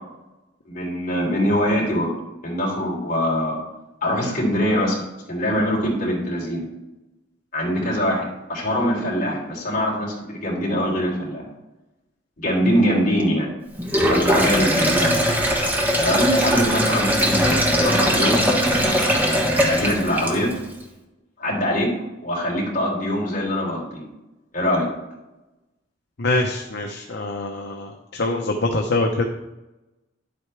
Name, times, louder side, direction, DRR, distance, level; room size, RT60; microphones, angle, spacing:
voice 1, 0.7-2.1 2.4-3.6 4.0-5.0 5.3-6.7 7.5-11.4 12.4-13.5 14.1-15.2 16.0-18.4 19.1-20.5 21.4-21.9 22.2-24.0 24.5-24.9, equal, 45° left, -4 dB, 3.6 m, -23 dB
Sink (filling or washing), 13.8-20.6, equal, 10° right, 1.4 m, -20 dB
voice 2, 26.2-29.3, left 2 dB, 65° left, 2 dB, 0.8 m, -24 dB
11.0 x 7.9 x 3.4 m, 0.99 s
head